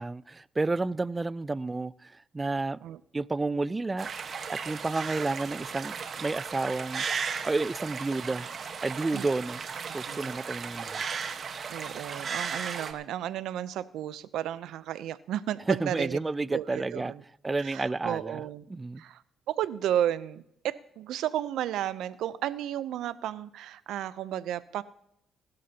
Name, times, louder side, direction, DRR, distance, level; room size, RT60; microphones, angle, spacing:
voice 1, 0.0-2.8 3.1-7.0 7.4-8.5 8.8-9.6 9.9-11.1 15.7-17.1 17.4-18.4 18.7-19.0, right 3 dB, 20° right, 0.4 m, -31 dB
sound 1, 4.0-12.9, right 6 dB, 50° right, 1.2 m, -36 dB
voice 2, 10.1-10.4 11.7-16.2 16.5-17.2 17.6-18.6 19.0-19.2 19.5-24.8, right 11 dB, 85° right, 0.6 m, -33 dB
20.5 x 13.0 x 2.9 m
cardioid pair, 90°, 0 cm